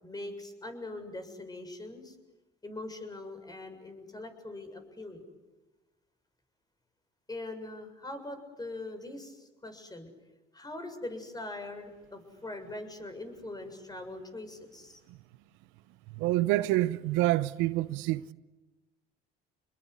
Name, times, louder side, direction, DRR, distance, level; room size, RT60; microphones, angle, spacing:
voice 1, 0.0-2.2 2.6-5.2 7.3-10.1 10.5-15.0, left 2 dB, 20° left, 7.1 m, -42 dB
voice 2, 16.2-18.3, right 17 dB, 80° right, 0.8 m, -27 dB
28.5 x 21.0 x 9.8 m
supercardioid pair, 75°, 19 cm